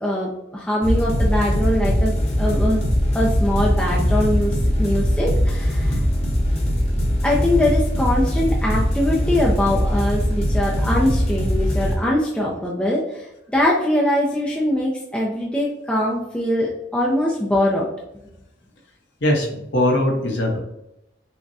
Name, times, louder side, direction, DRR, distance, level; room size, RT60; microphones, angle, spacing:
voice 1, 0.0-2.8 3.1-6.0 7.2-17.9, left 1 dB, 5° left, -4 dB, 0.4 m, -22 dB
sound 1, 0.8-11.9, equal, 30° left, 0.9 m, -21 dB
voice 2, 19.2-20.6, left 1 dB, 60° left, 1 dB, 0.9 m, -20 dB
5.8 x 2.1 x 2.6 m, 0.87 s
head